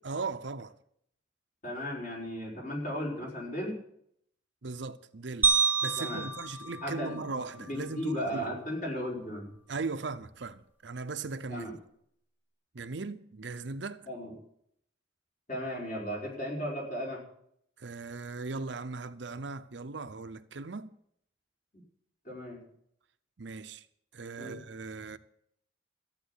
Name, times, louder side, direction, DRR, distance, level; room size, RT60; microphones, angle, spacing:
voice 1, 0.0-0.7 4.6-8.5 9.7-11.7 12.7-14.1 17.8-20.9 23.4-23.9 24.1-25.2, right 4 dB, 65° right, 0.7 m, -38 dB
voice 2, 1.6-3.8 6.0-6.3 6.8-9.5 11.5-11.7 14.1-14.3 15.5-17.2 21.7-21.8 22.2-22.6 24.4-24.6, equal, 40° left, 5.0 m, -36 dB
sound 1, 5.4-7.8, right 5 dB, 10° right, 1.0 m, -29 dB
14.0 x 8.9 x 8.2 m
head